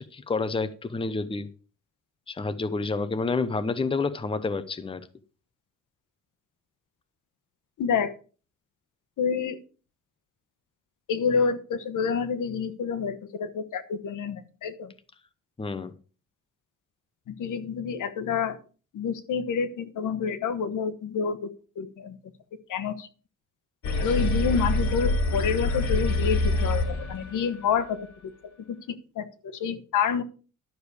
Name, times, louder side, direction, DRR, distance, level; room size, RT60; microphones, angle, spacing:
voice 1, 0.1-1.5 2.3-5.1 15.6-15.9, left 3 dB, 15° left, 12 dB, 0.8 m, -29 dB
voice 2, 7.8-8.1 9.2-9.6 11.1-14.9 17.4-18.6 18.9-21.4 21.8-22.2 22.7-23.1 24.0-26.8 27.1-28.0 28.7-28.8 29.2-30.2, left 6 dB, 80° left, 12 dB, 1.2 m, -28 dB
sound 1, 23.8-27.4, left 2 dB, 65° left, 2.1 m, -25 dB
12.0 x 6.9 x 4.9 m, 0.37 s
wide cardioid pair, 140°, 30 cm